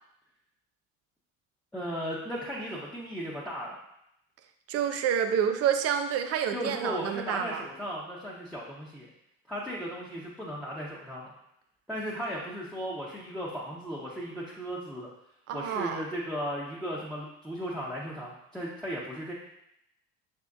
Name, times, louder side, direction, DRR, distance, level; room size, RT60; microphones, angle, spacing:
voice 1, 1.7-3.8 6.5-9.1 9.5-11.3 11.9-15.1 15.5-19.3, equal, ahead, -8 dB, 0.9 m, -36 dB
voice 2, 4.7-7.6 15.5-16.0, right 8 dB, 40° right, 7 dB, 0.5 m, -28 dB
6.5 x 2.6 x 2.4 m, 0.79 s
figure-of-eight pair, 60°, 40 cm